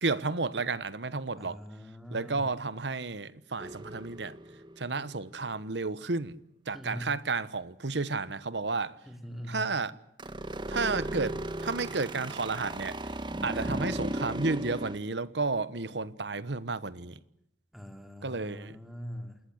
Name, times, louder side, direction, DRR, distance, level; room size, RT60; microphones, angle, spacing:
voice 1, 0.0-1.6 2.1-4.4 4.8-6.3 6.7-9.0 9.5-9.9 10.7-13.0 13.4-17.2 18.2-18.8, right 3 dB, 85° right, 1.2 m, -32 dB
voice 2, 1.4-2.5 6.7-7.1 9.1-9.7 13.5-13.9 17.7-19.4, equal, ahead, 3.3 m, -42 dB
sound 1, 3.6-5.2 10.2-15.0, right 1 dB, 25° right, 1.5 m, -36 dB
28.0 x 20.0 x 8.0 m
head